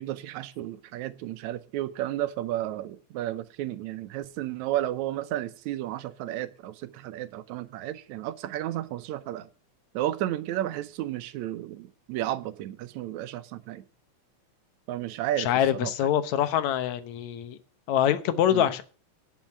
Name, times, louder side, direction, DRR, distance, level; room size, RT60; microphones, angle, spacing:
voice 1, 0.0-9.5 9.9-13.8 14.9-15.5 15.8-15.9 18.5-18.7, right 13 dB, 75° right, 2.1 m, -32 dB
voice 2, 15.4-17.6 17.9-18.8, left 10 dB, 70° left, 2.1 m, -24 dB
10.5 x 6.4 x 8.7 m
omnidirectional pair, 3.5 m